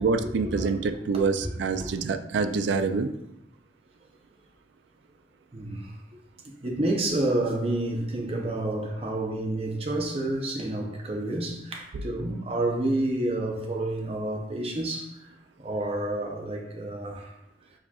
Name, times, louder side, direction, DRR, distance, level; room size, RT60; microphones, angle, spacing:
voice 1, 0.0-3.1 11.9-12.1, right 4 dB, 80° right, 9 dB, 0.4 m, -26 dB
voice 2, 1.1-1.5 1.8-1.9 5.5-5.9 6.6-15.2 15.6-17.4, right 1 dB, 35° right, 0 dB, 0.7 m, -29 dB
4.7 x 4.1 x 2.3 m, 0.81 s
head